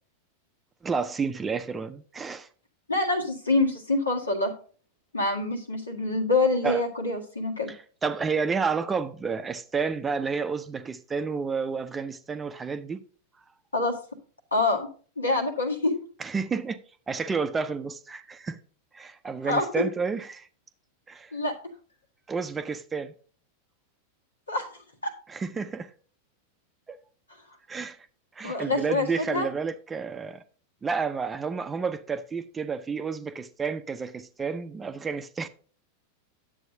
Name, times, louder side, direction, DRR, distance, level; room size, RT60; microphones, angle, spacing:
voice 1, 0.8-2.5 6.6-6.8 7.7-13.0 16.2-16.8 17.1-18.6 18.9-20.5 21.1-21.3 22.3-23.1 25.3-25.9 26.9-27.0 27.7-28.0 28.4-30.4 30.8-35.5, right 5 dB, 15° right, 0.6 m, -30 dB
voice 2, 2.9-4.5 5.1-7.7 13.7-14.0 14.5-14.9 15.2-16.0 19.4-19.6 21.3-21.6 24.5-24.7 25.0-25.1 28.4-29.5, left 2 dB, 80° left, 1.8 m, -26 dB
11.0 x 7.9 x 2.7 m
figure-of-eight pair, 90°, 0 cm